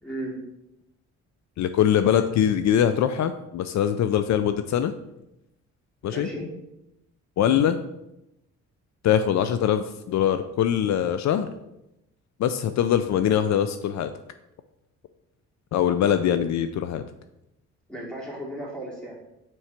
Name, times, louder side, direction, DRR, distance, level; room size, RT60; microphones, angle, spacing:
voice 1, 0.0-0.4 6.0-6.5 17.9-19.2, right 1 dB, 5° left, -4 dB, 3.0 m, -35 dB
voice 2, 1.6-4.9 6.0-6.3 7.4-7.8 9.0-11.5 12.4-14.1 15.7-17.0, left 9 dB, 65° left, 10 dB, 0.5 m, -22 dB
6.0 x 4.7 x 5.8 m, 0.86 s
cardioid pair, 90°, 30 cm